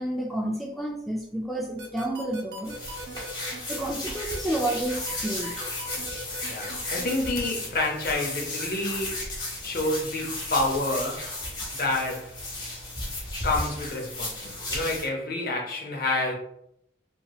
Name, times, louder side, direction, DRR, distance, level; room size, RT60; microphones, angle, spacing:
voice 1, 0.0-2.8 3.7-5.5, right 1 dB, ahead, 0.3 m, -30 dB
sound 1, 1.8-7.5, right 1 dB, 60° right, 0.7 m, -40 dB
sound 2, 2.6-15.1, left 2 dB, 25° left, 0.9 m, -34 dB
voice 2, 6.5-9.2 9.6-11.3 11.7-12.3 13.4-16.3, left 2 dB, 50° left, 0.6 m, -28 dB
3.0 x 2.8 x 2.3 m
head